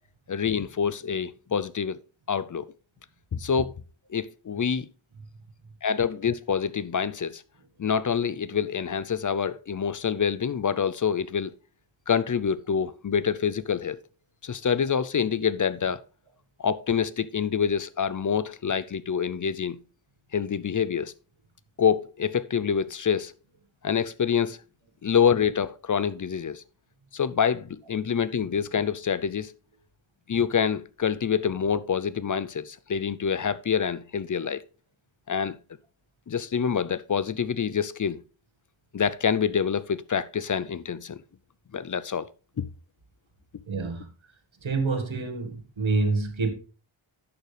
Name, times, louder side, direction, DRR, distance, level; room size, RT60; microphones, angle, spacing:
voice 1, 0.3-2.0 2.3-2.7 3.3-3.7 4.1-4.9 5.8-7.4 7.8-11.5 12.1-14.0 14.4-16.0 16.6-19.8 20.3-21.1 21.8-23.3 23.8-24.6 25.0-26.6 27.1-29.5 30.3-34.6 35.3-35.6 36.3-38.2 38.9-41.2 41.7-42.3 42.6-42.7, left 7 dB, 40° left, 0.5 m, -26 dB
voice 2, 43.7-44.1 44.6-46.5, right 3 dB, 70° right, 1.6 m, -27 dB
11.0 x 6.8 x 3.3 m
wide cardioid pair, 70°, 48 cm